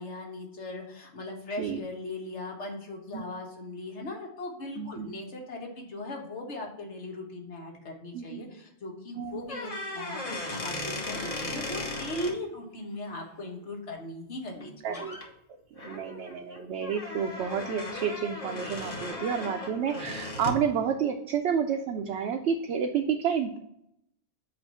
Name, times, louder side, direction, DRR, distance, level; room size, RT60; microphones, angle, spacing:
voice 1, 0.0-15.1, left 2 dB, 90° left, 1 dB, 1.6 m, -39 dB
voice 2, 4.8-5.1 8.1-8.4 9.1-9.4 14.8-15.2 15.8-23.6, right 7 dB, 80° right, 3 dB, 0.8 m, -30 dB
sound 1, 9.4-12.3 14.5-14.6 14.9-15.3 15.8-20.7, left 2 dB, 35° left, 1.0 m, -37 dB
7.6 x 2.6 x 5.4 m, 0.78 s
omnidirectional pair, 1.1 m